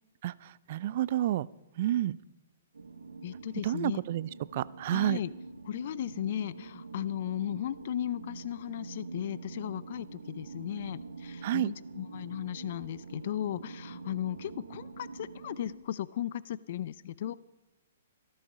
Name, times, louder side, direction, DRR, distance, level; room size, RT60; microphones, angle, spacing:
voice 1, 0.7-1.5 1.8-2.2 3.6-5.2 11.4-11.7, right 13 dB, 50° right, 22 dB, 0.4 m, -29 dB
sound 1, 2.7-15.8, right 4 dB, 85° right, 1.2 m, -45 dB
voice 2, 3.2-4.0 4.9-5.3 5.6-17.3, left 11 dB, 55° left, 19 dB, 0.4 m, -36 dB
14.5 x 13.0 x 5.4 m, 0.97 s
hypercardioid pair, 125°, 0 cm